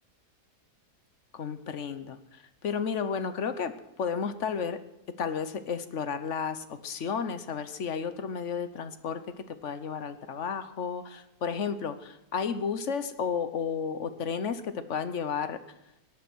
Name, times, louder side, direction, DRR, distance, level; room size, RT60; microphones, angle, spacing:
voice 1, 1.3-4.8 5.2-15.6, left 6 dB, 55° left, 11 dB, 1.1 m, -32 dB
18.0 x 12.0 x 6.2 m, 0.87 s
omnidirectional pair, 1.7 m